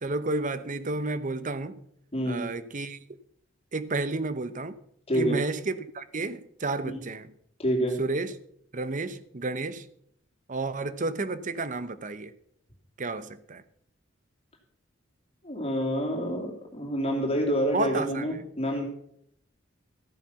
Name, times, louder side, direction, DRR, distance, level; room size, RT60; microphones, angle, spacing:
voice 1, 0.0-1.8 2.3-3.0 3.7-4.7 5.1-7.3 8.0-8.4 8.7-9.9 10.5-12.3 13.0-13.6 17.7-18.3, right 3 dB, 40° right, 0.8 m, -31 dB
voice 2, 2.1-2.4 5.1-5.3 6.8-7.0 7.6-8.0 15.4-18.8, equal, 30° left, 2.9 m, -27 dB
14.5 x 9.2 x 5.8 m
head